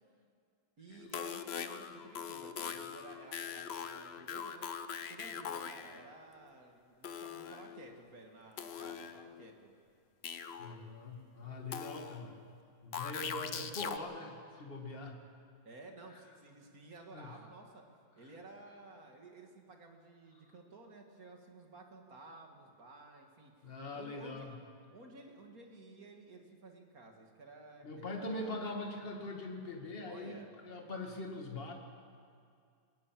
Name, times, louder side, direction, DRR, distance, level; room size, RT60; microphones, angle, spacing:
voice 1, 0.8-4.7 5.1-9.7 15.6-17.8 18.2-24.5 24.9-28.9 30.1-30.5, right 3 dB, 45° right, 2 dB, 2.5 m, -54 dB
sound 1, 0.9-6.0 7.0-7.9 8.6-9.5 10.2-10.9 11.7-12.4 12.9-14.0, left 7 dB, 70° left, 0.5 m, -42 dB
voice 2, 10.6-12.4 12.8-15.2 17.1-17.3 23.6-24.5 27.8-31.7, left 2 dB, 30° left, 2 dB, 2.3 m, -42 dB
21.0 x 19.0 x 7.6 m, 2.3 s
omnidirectional pair, 2.2 m